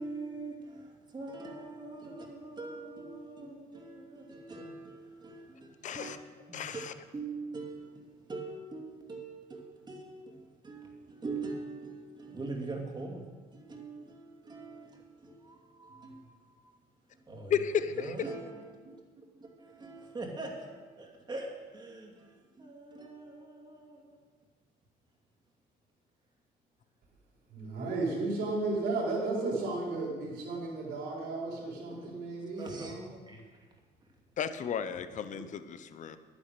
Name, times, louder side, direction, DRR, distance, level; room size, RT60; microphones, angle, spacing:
voice 1, 0.0-6.1 6.5-6.8 7.1-13.3 13.5-16.8 17.1-17.6 18.0-24.2 31.9-32.2 32.6-33.7, right 3 dB, 25° right, 0 dB, 2.6 m, -43 dB
voice 2, 5.8-6.2 6.5-6.9 17.5-18.3 34.4-36.2, left 8 dB, 45° left, 11 dB, 0.7 m, -33 dB
voice 3, 27.5-33.0 35.3-35.4, right 3 dB, 75° right, -3 dB, 4.5 m, -34 dB
10.5 x 10.0 x 6.7 m, 1.5 s
cardioid pair, 110°, 17 cm